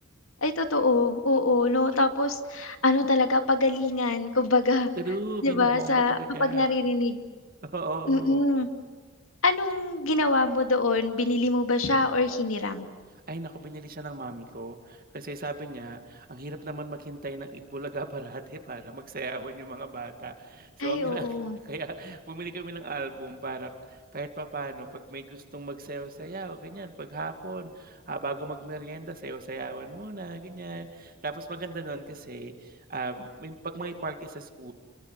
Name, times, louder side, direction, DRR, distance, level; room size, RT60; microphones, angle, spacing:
voice 1, 0.4-4.9 5.4-7.2 8.1-8.7 9.4-12.9 20.8-21.6, left 2 dB, 85° left, 6 dB, 2.4 m, -24 dB
voice 2, 5.0-6.6 7.7-8.4 13.3-21.3 21.6-34.7, right 2 dB, 45° right, 5 dB, 2.1 m, -37 dB
29.5 x 24.0 x 8.2 m, 1.4 s
head